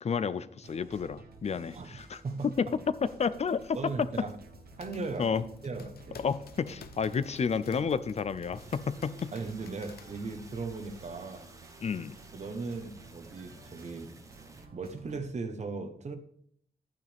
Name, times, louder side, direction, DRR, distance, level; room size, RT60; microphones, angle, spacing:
voice 1, 0.0-2.2 2.6-2.7 3.2-3.8 5.2-5.4 6.2-9.3 11.8-12.1, left 6 dB, 45° left, 15 dB, 0.5 m, -31 dB
sound 1, 0.6-15.2, right 4 dB, 85° right, 1.2 m, -53 dB
voice 2, 1.5-1.9 2.2-2.5 3.7-4.4 4.8-5.3 5.6-6.2 9.3-11.5 12.3-14.1 14.7-16.2, right 3 dB, 50° right, 8 dB, 1.1 m, -38 dB
sound 2, 4.4-10.7, left 6 dB, 85° left, 0.8 m, -53 dB
sound 3, 8.5-14.7, right 2 dB, 20° right, 1.0 m, -54 dB
12.0 x 8.9 x 3.5 m, 0.64 s
wide cardioid pair, 145°, 15 cm